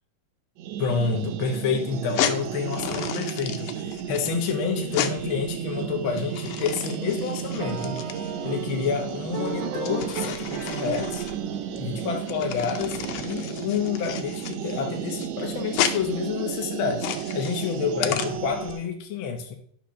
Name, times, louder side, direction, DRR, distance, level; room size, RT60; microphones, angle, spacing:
sound 1, 0.6-18.9, right 10 dB, 75° right, 1.7 m, -33 dB
voice 1, 0.8-8.0 8.4-11.2 11.7-19.5, left 6 dB, 65° left, 3 dB, 1.2 m, -29 dB
sound 2, 2.0-18.7, left 10 dB, 80° left, 2.3 m, -33 dB
sound 3, 7.6-12.9, right 6 dB, 50° right, 1.8 m, -36 dB
11.5 x 4.3 x 6.3 m, 0.63 s
omnidirectional pair, 3.7 m